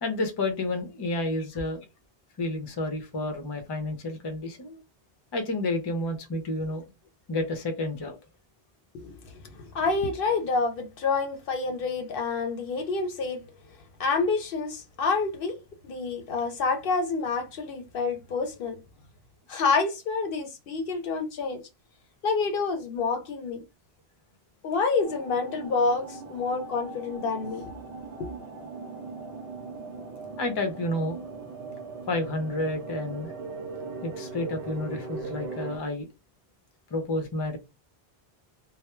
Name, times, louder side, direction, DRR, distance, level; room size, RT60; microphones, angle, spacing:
voice 1, 0.0-1.9 2.4-4.8 5.3-6.8 7.3-8.2 30.4-31.2 32.1-33.3 34.0-36.1 36.9-37.6, left 2 dB, 35° left, 0.5 m, -30 dB
voice 2, 8.9-13.4 14.0-15.6 15.8-18.8 19.5-21.6 22.2-23.6 24.6-27.7 28.2-28.3, left 4 dB, 65° left, 0.7 m, -28 dB
sound 1, 25.0-35.8, right 4 dB, 65° right, 0.7 m, -39 dB
2.2 x 2.0 x 3.0 m
omnidirectional pair, 1.0 m